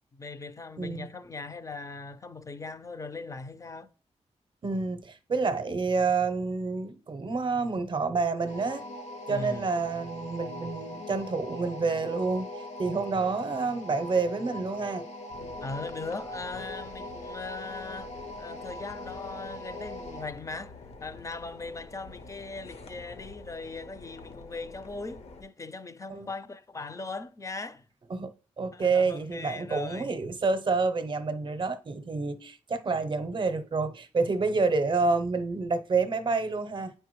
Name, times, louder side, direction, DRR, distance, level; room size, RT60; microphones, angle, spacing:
voice 1, 0.1-3.9 9.3-9.7 15.6-18.1 18.4-20.7 21.0-27.9 28.7-30.1, left 3 dB, 25° left, 0.4 m, -39 dB
voice 2, 0.8-1.1 4.6-8.9 9.3-12.5 12.8-15.1 26.1-26.3 28.1-36.9, right 4 dB, 45° right, 0.6 m, -28 dB
sound 1, 8.5-20.3, left 1 dB, 75° left, 1.3 m, -41 dB
sound 2, 15.3-25.4, left 3 dB, 60° left, 0.8 m, -48 dB
9.2 x 4.5 x 3.0 m
wide cardioid pair, 135°, 12 cm